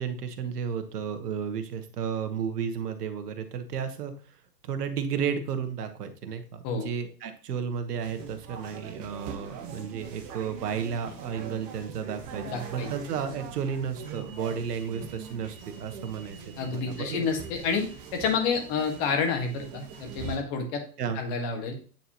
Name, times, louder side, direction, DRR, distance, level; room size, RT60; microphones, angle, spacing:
voice 1, 0.0-4.1 4.7-16.4 16.7-17.3 21.0-21.2, right 7 dB, 70° right, 8 dB, 1.3 m, -33 dB
sound 1, 8.0-20.4, right 6 dB, 15° right, 0.5 m, -42 dB
voice 2, 12.4-12.9 16.6-20.8 21.1-21.8, left 5 dB, 35° left, 4 dB, 1.6 m, -29 dB
9.0 x 4.0 x 2.9 m, 0.41 s
hypercardioid pair, 135°, 49 cm